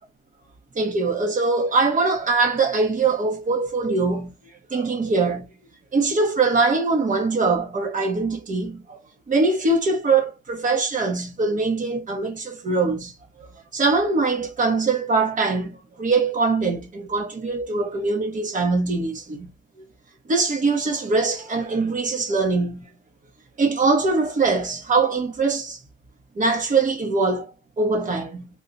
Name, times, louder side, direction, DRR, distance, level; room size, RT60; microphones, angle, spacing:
voice 1, 0.7-4.3 4.7-5.5 5.9-9.0 9.3-13.1 13.7-19.5 20.3-22.9 23.6-25.8 26.4-27.5 27.8-28.5, right 3 dB, 40° right, 1.2 m, -22 dB
3.7 x 2.4 x 2.6 m
cardioid pair, 90°, 20 cm